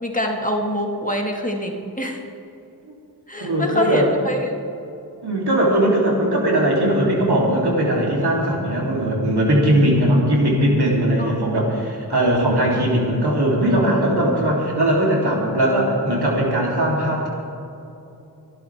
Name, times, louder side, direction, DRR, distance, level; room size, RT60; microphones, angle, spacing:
voice 1, 0.0-2.2 3.3-4.6 11.2-11.3, equal, 20° left, 1 dB, 1.9 m, -25 dB
voice 2, 3.4-4.1 5.2-17.3, right 1 dB, 85° right, -3 dB, 3.5 m, -19 dB
25.5 x 11.5 x 3.6 m, 2.9 s
wide cardioid pair, 60°, 38 cm